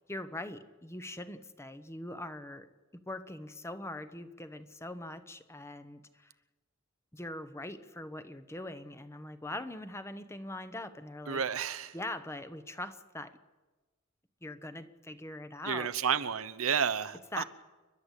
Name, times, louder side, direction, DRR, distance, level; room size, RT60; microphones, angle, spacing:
voice 1, 0.0-2.7 3.0-6.3 7.1-11.4 11.9-13.4 14.4-15.9 17.3-17.4, left 1 dB, 15° left, 11 dB, 0.9 m, -42 dB
voice 2, 11.3-11.9 15.6-17.4, right 7 dB, 85° right, 13 dB, 0.9 m, -31 dB
29.0 x 11.5 x 8.2 m, 1.2 s
head